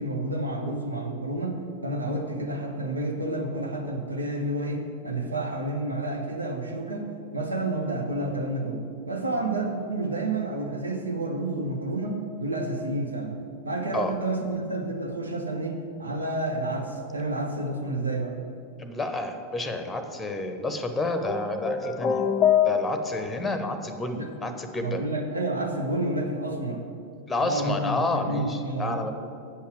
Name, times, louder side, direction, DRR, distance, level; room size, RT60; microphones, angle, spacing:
voice 1, 0.0-7.1 7.3-13.4 13.6-18.4 24.1-24.3 24.8-26.8 27.4-29.0, right 2 dB, 80° right, 2 dB, 1.1 m, -30 dB
voice 2, 18.8-22.3 22.6-25.0 27.3-29.1, left 2 dB, 10° left, 7 dB, 0.9 m, -30 dB
sound 1, 21.2-23.3, left 8 dB, 30° left, 0.5 m, -24 dB
8.3 x 5.7 x 7.6 m, 2.5 s
figure-of-eight pair, 90°, 0 cm